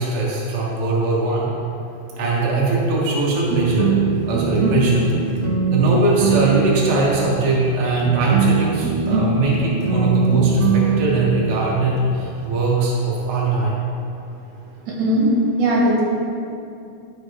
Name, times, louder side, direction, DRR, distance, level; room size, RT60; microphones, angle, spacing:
voice 1, 0.0-1.5 2.2-3.9 4.3-5.1 5.7-13.8, right 2 dB, 45° right, -6 dB, 1.5 m, -20 dB
sound 1, 3.5-12.8, right 5 dB, 85° right, 1.3 m, -22 dB
voice 2, 15.0-15.3 15.6-16.0, right 1 dB, 60° right, -4 dB, 2.9 m, -18 dB
14.5 x 5.6 x 3.6 m, 2.6 s
omnidirectional pair, 4.2 m